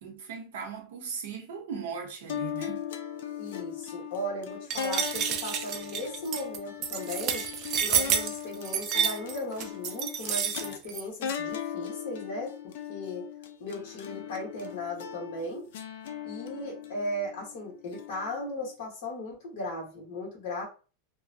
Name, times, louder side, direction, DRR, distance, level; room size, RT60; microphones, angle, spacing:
voice 1, 0.0-2.8, right 6 dB, 70° right, 0.8 m, -38 dB
sound 1, 2.3-18.7, left 8 dB, 65° left, 0.4 m, -39 dB
voice 2, 3.4-7.4 7.8-13.3 13.6-15.7 16.2-20.6, left 1 dB, 45° left, 1.3 m, -37 dB
sound 2, 4.7-11.0, right 8 dB, 30° right, 0.3 m, -29 dB
2.9 x 2.1 x 2.6 m
supercardioid pair, 175°, 0 cm